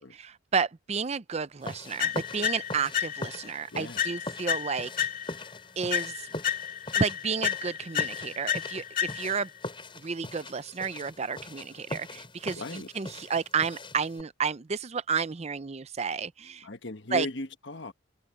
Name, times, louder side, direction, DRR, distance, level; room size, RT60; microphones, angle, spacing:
voice 1, 0.0-4.9 5.8-6.3 6.9-9.5 10.0-16.7 17.1-17.3, right 5 dB, 30° right, 0.5 m, -31 dB
sound 1, 1.6-14.2, left 2 dB, 25° left, 6.2 m, -42 dB
sound 2, 2.0-3.5 4.0-5.5 5.9-9.5, left 10 dB, 40° left, 3.3 m, -31 dB
voice 2, 3.7-4.1 12.6-12.9 16.6-17.9, left 2 dB, 55° left, 1.3 m, -37 dB
head